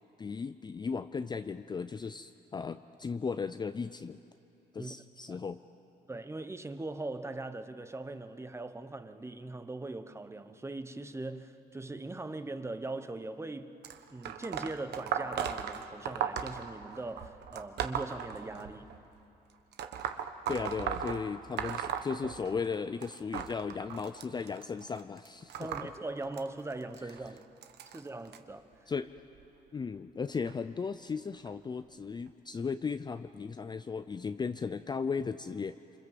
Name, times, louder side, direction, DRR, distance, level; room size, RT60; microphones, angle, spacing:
voice 1, 0.2-4.2 4.7-5.6 20.5-25.5 28.9-29.1 29.7-36.0, left 5 dB, 25° left, 0.5 m, -36 dB
voice 2, 6.1-13.8 14.1-18.9 25.6-27.4 27.9-28.9, right 2 dB, 15° right, 1.1 m, -40 dB
sound 1, 13.8-19.0 19.7-22.7 23.0-28.4 29.2-29.4 30.5-30.6 31.5-31.6 32.3-32.4, right 8 dB, 80° right, 1.2 m, -37 dB
27.0 x 25.5 x 7.6 m
cardioid pair, 110°, 17 cm